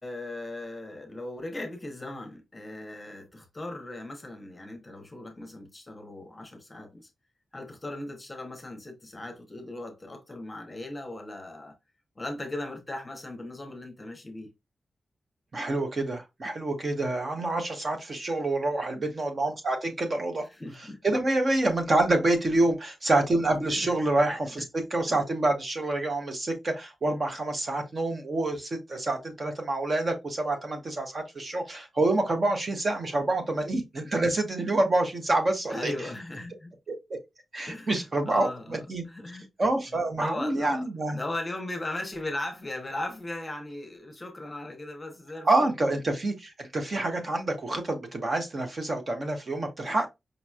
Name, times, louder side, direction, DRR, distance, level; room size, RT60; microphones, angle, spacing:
voice 1, 0.0-7.1 7.5-11.8 12.1-14.5 20.4-21.0 23.7-23.9 24.6-24.7 25.1-25.2 35.7-36.7 37.7-39.5 39.9-46.0, left 2 dB, 20° left, 0.9 m, -38 dB
voice 2, 15.5-20.4 21.0-24.6 24.9-35.9 37.5-39.0 39.6-41.2 45.4-50.1, right 2 dB, 35° right, 0.8 m, -27 dB
5.1 x 3.0 x 2.3 m
wide cardioid pair, 175°, 0 cm